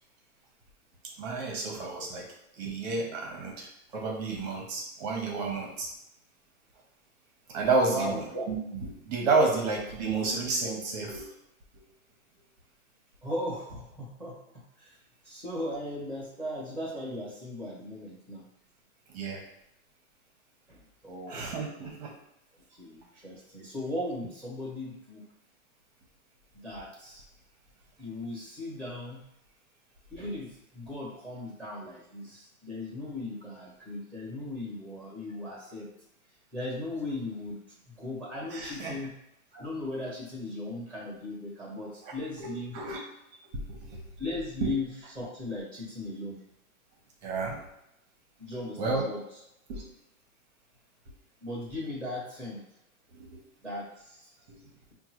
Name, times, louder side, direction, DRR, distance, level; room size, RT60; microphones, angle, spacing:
voice 1, 1.2-2.3 2.6-3.7 3.9-5.9 7.5-11.3 19.1-19.4 21.3-22.1 38.5-39.0 42.0-42.1 42.4-43.0 43.7-44.0 44.6-44.7 47.2-47.6 48.8-49.0 49.7-49.8 53.2-53.3 54.5-54.6, right 3 dB, 30° right, 0 dB, 0.8 m, -30 dB
voice 2, 7.8-8.2 13.2-14.4 14.8-15.0 15.2-18.4 20.7-21.5 21.8-21.9 22.8-25.2 26.5-27.2 28.0-29.2 30.1-35.9 36.5-37.6 38.0-39.1 39.5-42.8 44.2-46.4 47.3-47.5 48.4-49.2 51.4-52.6 53.6-54.3, left 1 dB, 5° left, -5 dB, 1.1 m, -37 dB
5.3 x 2.2 x 3.0 m, 0.82 s
supercardioid pair, 165°, 43 cm